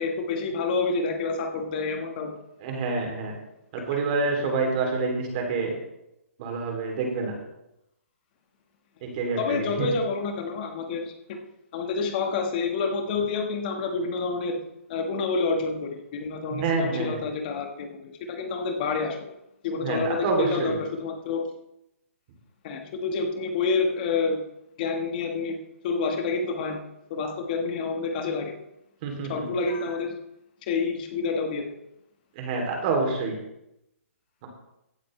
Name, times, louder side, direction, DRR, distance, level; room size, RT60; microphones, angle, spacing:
voice 1, 0.0-2.3 9.4-11.4 11.7-14.6 14.9-19.2 19.6-21.5 22.6-24.4 24.8-25.6 25.8-26.8 27.1-28.5 29.3-30.1 30.7-31.6, left 4 dB, 35° left, 4 dB, 1.5 m, -28 dB
voice 2, 2.6-3.4 3.7-5.7 6.4-7.3 9.0-9.9 16.5-17.2 19.8-20.7 29.0-29.4 32.3-33.4, right 3 dB, 35° right, 2 dB, 3.1 m, -27 dB
15.5 x 8.4 x 3.3 m, 0.85 s
hypercardioid pair, 155°, 8 cm